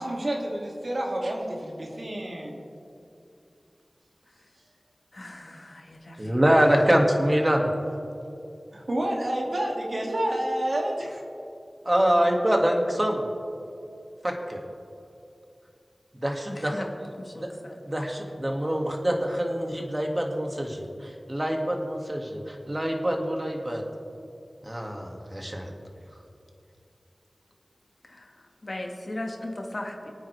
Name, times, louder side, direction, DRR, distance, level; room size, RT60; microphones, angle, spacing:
voice 1, 0.0-2.6 8.7-11.2, right 1 dB, 65° right, -2 dB, 2.6 m, -29 dB
voice 2, 5.1-6.4 16.5-16.9 17.2-17.8 28.1-30.1, left 1 dB, 55° left, 1 dB, 1.9 m, -38 dB
voice 3, 6.2-7.7 11.8-13.3 14.2-14.6 16.1-16.9 17.4-17.5 17.8-23.8 24.6-25.7, equal, 30° right, 1 dB, 2.2 m, -25 dB
25.5 x 9.2 x 3.5 m, 2.6 s
wide cardioid pair, 40°, 0 cm